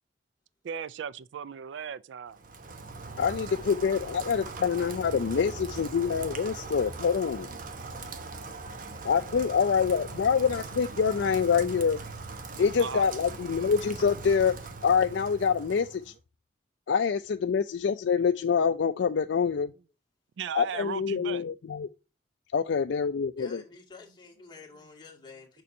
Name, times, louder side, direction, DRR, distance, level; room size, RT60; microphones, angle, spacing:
voice 1, 0.6-2.4 6.5-6.7 12.8-13.0 20.4-21.4, right 7 dB, 85° right, 0.4 m, -37 dB
Rain, 2.3-16.1, right 3 dB, 50° right, 1.0 m, -40 dB
voice 2, 3.2-7.5 9.0-12.0 12.6-14.5 14.8-16.1 16.9-19.7 20.5-21.9 22.5-23.6, left 6 dB, 85° left, 0.4 m, -26 dB
voice 3, 23.4-25.6, left 4 dB, 25° left, 2.2 m, -49 dB
6.8 x 6.2 x 2.7 m
head